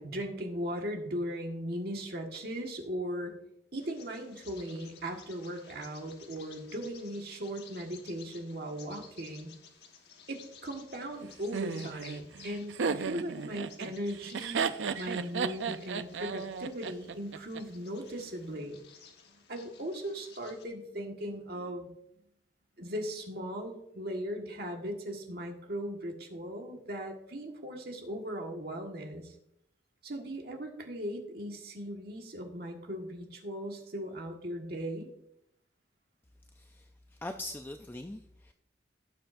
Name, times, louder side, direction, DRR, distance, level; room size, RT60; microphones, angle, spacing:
voice 1, 0.0-3.3 3.7-9.5 10.3-14.7 15.0-18.8 19.3-21.9 22.8-29.3 30.0-35.1, equal, 55° right, 2 dB, 1.6 m, -38 dB
Bird vocalization bird call bird song, 3.8-20.6, left 7 dB, 60° left, 1.3 m, -56 dB
Laughter, 11.5-17.6, right 6 dB, 85° right, 0.5 m, -34 dB
voice 2, 36.5-38.5, left 1 dB, 10° left, 6 dB, 0.3 m, -42 dB
17.5 x 7.0 x 2.6 m, 0.77 s
head